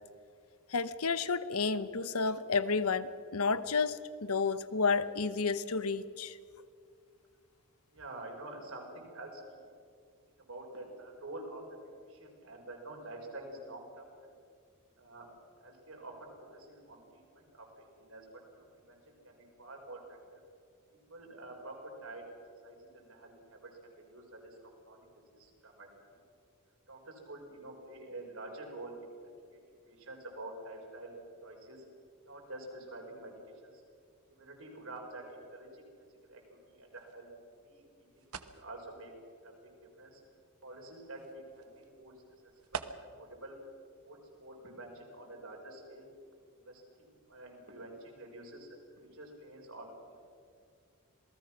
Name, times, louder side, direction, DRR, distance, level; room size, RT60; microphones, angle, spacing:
voice 1, 0.7-6.4, left 4 dB, 80° left, 14 dB, 1.0 m, -31 dB
voice 2, 7.9-9.4 9.7-9.8 10.4-11.8 12.1-14.3 15.0-15.3 15.6-18.3 18.9-20.4 20.9-22.2 22.6-25.9 26.9-29.1 29.9-31.1 31.4-31.8 32.3-33.3 33.6-33.8 34.3-35.8 36.2-37.3 37.6-37.8 38.2-39.1 39.4-39.5 40.0-40.2 40.6-42.1 42.7-43.6 44.1-46.1 46.6-50.2, right 2 dB, 70° right, 0 dB, 5.2 m, -48 dB
sound 1, 36.9-43.4, right 6 dB, 90° right, 1.1 m, -49 dB
27.0 x 19.0 x 6.0 m, 2.3 s
head